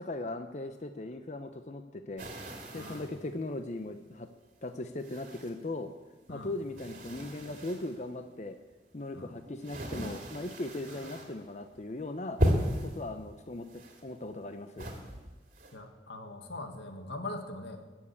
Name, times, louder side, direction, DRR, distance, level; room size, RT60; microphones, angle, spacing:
voice 1, 0.0-2.3 2.7-4.3 4.6-5.9 6.3-8.6 8.9-12.4 12.8-13.7 14.0-14.9, left 2 dB, 40° left, 7 dB, 0.7 m, -38 dB
sound 1, 2.2-3.2 3.9-4.0 5.0-5.8 6.2-8.0 8.7-11.4 11.7-12.0 12.4-13.0 13.6-14.4 14.8-15.7, equal, 45° right, 2.5 m, -35 dB
voice 2, 2.7-3.1 6.3-6.5 9.1-9.4 10.9-11.2 15.7-17.8, left 2 dB, 85° left, 5 dB, 1.9 m, -42 dB
21.0 x 7.3 x 8.4 m, 1.3 s
head